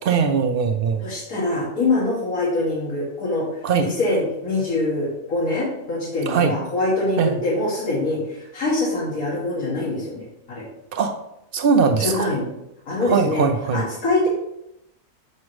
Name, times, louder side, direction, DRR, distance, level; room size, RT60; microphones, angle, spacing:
voice 1, 0.0-1.0 3.6-3.9 6.3-6.5 7.2-7.4 10.9-11.2 11.5-12.3 13.0-13.8, right 5 dB, 70° right, 7 dB, 0.5 m, -20 dB
voice 2, 1.0-3.5 3.8-10.7 12.0-12.5 12.9-13.5 13.7-14.3, left 2 dB, 85° left, -6 dB, 1.8 m, -24 dB
6.1 x 5.4 x 3.1 m, 0.84 s
omnidirectional pair, 1.5 m